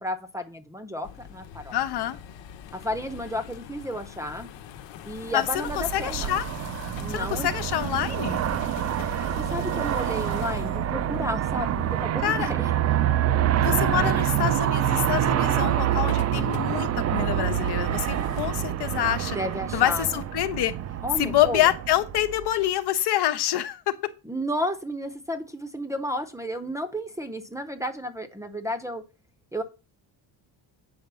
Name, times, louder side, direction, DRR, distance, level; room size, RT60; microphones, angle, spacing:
voice 1, 0.0-1.7 2.7-4.5 5.0-6.3 7.0-7.5 9.3-12.7 19.3-20.1 21.0-21.7 24.2-29.0 29.5-29.6, equal, 5° right, 0.7 m, -32 dB
sound 1, 1.0-18.5, left 9 dB, 75° left, 1.2 m, -42 dB
voice 2, 1.7-2.2 5.3-6.5 7.1-8.4 12.2-12.5 13.6-19.4 19.7-20.8 21.2-24.0, left 12 dB, 60° left, 1.1 m, -26 dB
Aircraft, 5.4-22.7, right 11 dB, 35° right, 0.4 m, -26 dB
8.2 x 5.0 x 6.9 m
cardioid pair, 160°, 45 cm